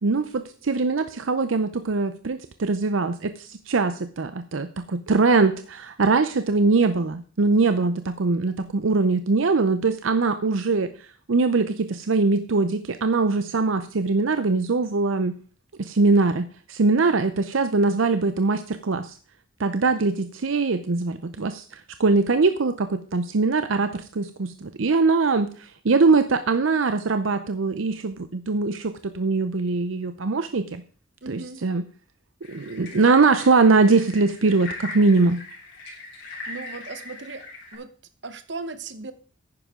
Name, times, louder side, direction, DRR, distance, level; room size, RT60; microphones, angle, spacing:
voice 1, 0.0-15.3 15.8-19.1 19.6-30.8 31.3-31.8 32.5-35.4, right 3 dB, 80° right, 10 dB, 0.6 m, -22 dB
voice 2, 31.2-31.6 36.5-37.5 37.7-37.9 38.2-39.1, right 3 dB, 60° right, 11 dB, 1.0 m, -36 dB
sound 1, 32.4-37.8, left 2 dB, 65° left, 3.6 m, -40 dB
10.5 x 9.7 x 3.7 m, 0.40 s
head